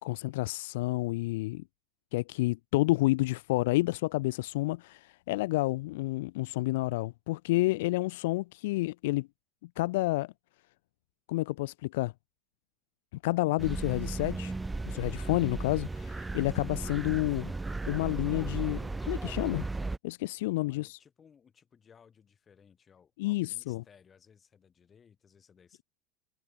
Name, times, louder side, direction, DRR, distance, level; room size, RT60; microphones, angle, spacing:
voice 1, 0.0-1.6 2.1-9.3 9.8-10.3 11.3-12.1 13.2-14.5 14.9-17.5 17.9-19.7 20.0-21.0 23.2-23.8, left 20 dB, 75° left, 0.4 m, -30 dB
sound 1, 13.6-20.0, right 3 dB, 10° right, 0.7 m, -35 dB
voice 2, 20.6-25.8, left 7 dB, 30° left, 6.2 m, -61 dB
hypercardioid pair, 90°, 0 cm